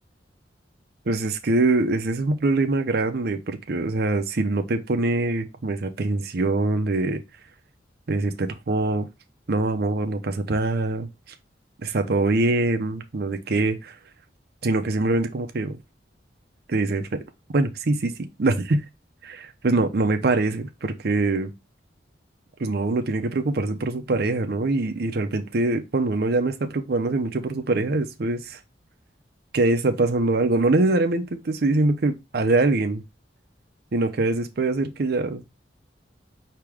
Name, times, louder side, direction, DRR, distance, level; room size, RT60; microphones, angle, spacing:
voice 1, 1.1-7.2 8.1-9.1 9.5-11.1 11.8-13.9 14.6-15.8 16.7-17.1 17.5-18.1 18.4-18.8 19.2-21.5 22.6-28.6 29.5-33.0 33.9-35.4, right 2 dB, 60° right, 0.6 m, -23 dB
4.7 x 2.9 x 3.5 m
head